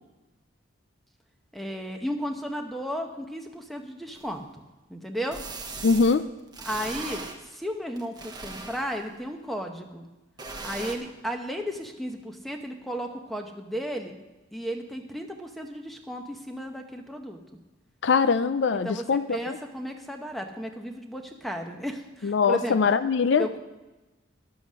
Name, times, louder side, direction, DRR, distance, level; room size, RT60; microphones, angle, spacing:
voice 1, 1.5-4.5 4.9-5.4 6.6-10.1 10.6-14.1 14.5-17.4 18.8-22.8 23.4-23.6, equal, ahead, 4 dB, 0.8 m, -34 dB
sound 1, 4.2-4.3 5.3-6.2 6.5-7.4 8.0-9.1 10.4-11.0, right 3 dB, 20° right, 0.9 m, -38 dB
voice 2, 5.8-6.3 18.0-19.3 22.2-23.5, left 5 dB, 65° left, 12 dB, 0.4 m, -22 dB
11.0 x 7.8 x 6.3 m, 1.1 s
head